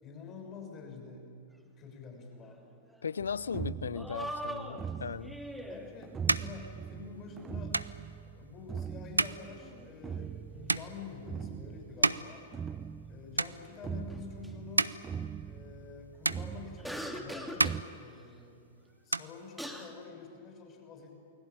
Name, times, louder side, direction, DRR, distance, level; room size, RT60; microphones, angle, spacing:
voice 1, 0.0-1.3 1.8-2.6 5.6-7.8 8.3-12.4 13.1-15.0 15.4-17.5 17.9-18.6 19.0-21.1, left 5 dB, 30° left, 6.7 m, -48 dB
sound 1, 2.2-2.6 2.9-3.0 3.9-6.0 9.4-11.1 11.5-12.3 14.1-14.5 16.8-17.8 19.2-19.3 19.6-19.9, equal, ahead, 2.8 m, -42 dB
voice 2, 3.0-5.4, left 6 dB, 75° left, 0.6 m, -37 dB
sound 2, 3.2-17.8, right 7 dB, 20° right, 0.7 m, -42 dB
sound 3, 5.4-13.1 13.3-14.1 14.5-16.0 16.2-17.1 17.4-18.7 18.9-20.0, right 3 dB, 90° right, 0.6 m, -34 dB
29.0 x 21.0 x 8.9 m
figure-of-eight pair, 100°, 0 cm